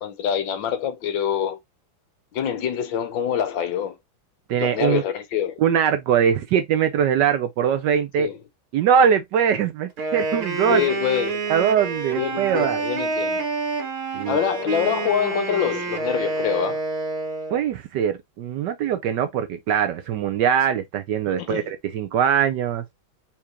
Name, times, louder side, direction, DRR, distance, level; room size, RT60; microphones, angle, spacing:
voice 1, 0.0-1.6 2.3-4.0 4.6-5.6 8.2-8.4 10.7-11.5 12.1-13.4 14.3-16.8 21.3-21.6, left 9 dB, 70° left, 1.4 m, -25 dB
voice 2, 4.5-5.0 5.6-8.3 8.7-10.8 11.5-12.8 14.1-14.4 17.5-22.8, right 8 dB, 70° right, 1.1 m, -22 dB
Wind instrument woodwind instrument, 9.9-17.6, right 3 dB, 90° right, 2.4 m, -28 dB
4.5 x 3.6 x 2.8 m
omnidirectional pair, 2.3 m